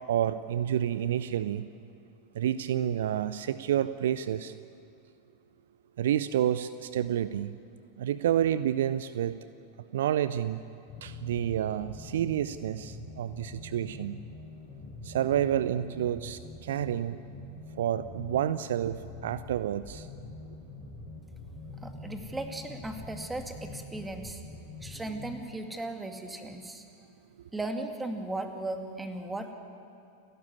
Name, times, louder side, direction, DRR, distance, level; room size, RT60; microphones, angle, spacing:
voice 1, 0.1-1.7 2.3-4.5 6.0-7.6 8.0-9.4 9.9-10.6 11.0-14.2 15.0-17.2 17.8-20.1, right 10 dB, 60° right, 15 dB, 0.6 m, -29 dB
sound 1, 10.9-25.3, left 3 dB, 25° left, 4.6 m, -44 dB
voice 2, 21.8-24.4 24.8-26.9 27.5-29.5, right 2 dB, 10° right, 6 dB, 2.2 m, -37 dB
29.5 x 12.5 x 9.7 m, 2.6 s
figure-of-eight pair, 90°, 0 cm